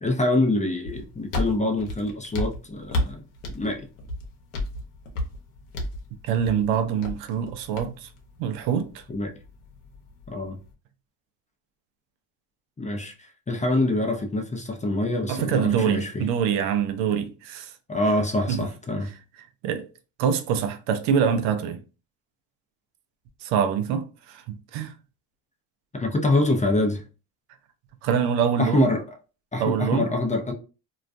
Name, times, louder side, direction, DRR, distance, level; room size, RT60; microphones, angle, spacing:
voice 1, 0.0-3.2 3.5-3.9 9.1-9.3 10.3-10.6 12.8-16.3 17.9-19.1 25.9-27.0 28.6-29.0 29.5-30.5, left 2 dB, 15° left, 0.4 m, -25 dB
sound 1, 0.8-10.7, left 1 dB, 85° left, 0.8 m, -34 dB
voice 2, 6.2-8.1 8.4-9.0 15.3-17.7 18.5-18.7 19.6-19.8 20.2-21.8 23.4-24.9 28.0-28.9 29.6-30.1, right 7 dB, 85° right, 0.6 m, -25 dB
2.3 x 2.2 x 2.5 m
supercardioid pair, 60°, 48 cm